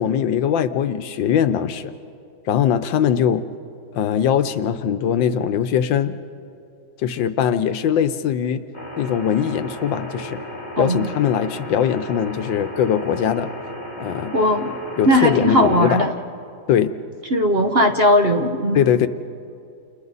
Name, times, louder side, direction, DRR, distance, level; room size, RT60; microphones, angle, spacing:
voice 1, 0.0-1.9 2.5-3.4 3.9-6.2 7.0-8.6 9.0-10.4 10.8-13.5 14.0-14.3 15.0-16.1 16.7-16.9 18.7-19.1, left 9 dB, 80° left, 11 dB, 1.6 m, -21 dB
sound 1, 8.7-16.1, equal, 20° left, 3.3 m, -34 dB
voice 2, 10.8-11.1 14.3-14.7 15.1-16.1 17.3-18.9, equal, 40° right, 5 dB, 0.9 m, -18 dB
30.0 x 29.0 x 4.1 m, 2.5 s
omnidirectional pair, 2.0 m